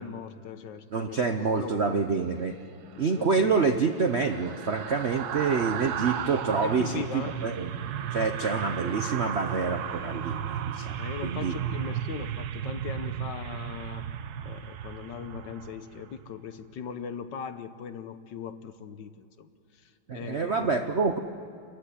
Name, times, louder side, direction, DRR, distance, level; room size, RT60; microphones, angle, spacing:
voice 1, 0.0-2.1 3.2-3.8 6.6-7.4 11.0-14.1 14.4-20.9, left 7 dB, 65° left, 11 dB, 1.4 m, -40 dB
voice 2, 0.9-2.6 3.0-7.7 8.1-11.5 20.1-21.2, right 4 dB, 80° right, 6 dB, 0.5 m, -27 dB
sound 1, 2.9-16.2 16.6-16.8, right 9 dB, 65° right, 1.0 m, -35 dB
28.5 x 15.0 x 9.9 m, 2.5 s
omnidirectional pair, 2.4 m